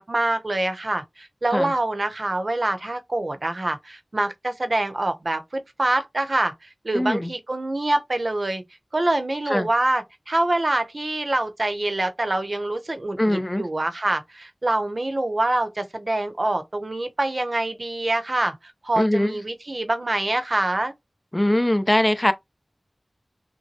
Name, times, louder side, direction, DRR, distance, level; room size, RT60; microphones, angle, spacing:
voice 1, 0.0-6.5 6.8-8.6 8.9-18.5 18.8-20.9, right 2 dB, 55° right, 0.8 m, -25 dB
voice 2, 6.9-7.3 9.5-9.7 13.2-13.6 19.0-19.3 21.3-22.3, left 1 dB, 20° left, 0.6 m, -21 dB
5.9 x 2.1 x 2.8 m
wide cardioid pair, 50°, 0 cm